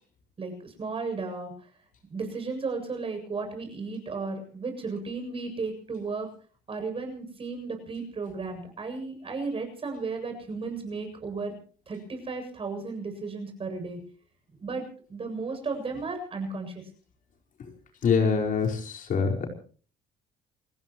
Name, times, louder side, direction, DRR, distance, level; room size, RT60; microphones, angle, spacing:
voice 1, 0.4-1.5 2.1-6.3 6.7-11.5 11.9-14.0 14.6-16.8, right 4 dB, 35° right, 5 dB, 7.6 m, -34 dB
voice 2, 18.0-19.5, left 5 dB, 50° left, 2 dB, 5.0 m, -24 dB
29.5 x 16.0 x 3.1 m, 0.42 s
cardioid pair, 110°, 17 cm